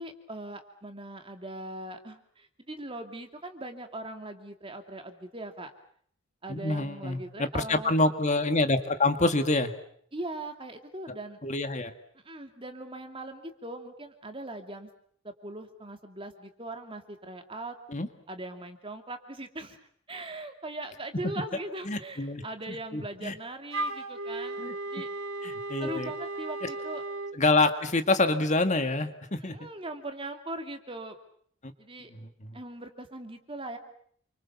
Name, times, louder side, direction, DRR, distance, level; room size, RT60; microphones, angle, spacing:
voice 1, 0.0-5.7 6.4-7.9 10.1-11.4 12.2-14.9 15.2-17.8 18.3-19.8 20.1-24.6 24.9-25.1 25.8-27.0 29.4-31.2 31.8-32.1 32.5-33.8, right 2 dB, 25° right, 6 dB, 2.7 m, -40 dB
voice 2, 6.5-9.7 11.4-11.9 17.9-18.1 21.9-22.4 22.9-23.3 24.6-24.7 25.4-26.1 27.3-29.6 31.6-31.7, left 2 dB, 35° left, 8 dB, 1.8 m, -26 dB
Wind instrument woodwind instrument, 23.7-27.4, right 2 dB, 85° right, 2.4 m, -35 dB
28.5 x 25.5 x 7.2 m, 0.63 s
head